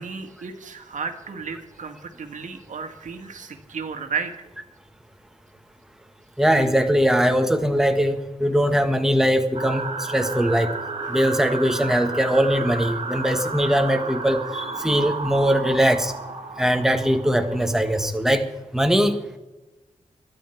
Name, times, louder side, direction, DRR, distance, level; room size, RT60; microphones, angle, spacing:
voice 1, 0.0-4.3 11.0-11.1, right 5 dB, 80° right, 6 dB, 1.7 m, -33 dB
voice 2, 6.4-10.7 11.1-16.1 16.6-18.5 18.7-19.2, equal, 5° right, 5 dB, 1.5 m, -21 dB
sound 1, 9.5-18.1, right 3 dB, 50° right, 2.4 m, -32 dB
23.0 x 10.0 x 4.5 m, 1.0 s
wide cardioid pair, 95°, 13 cm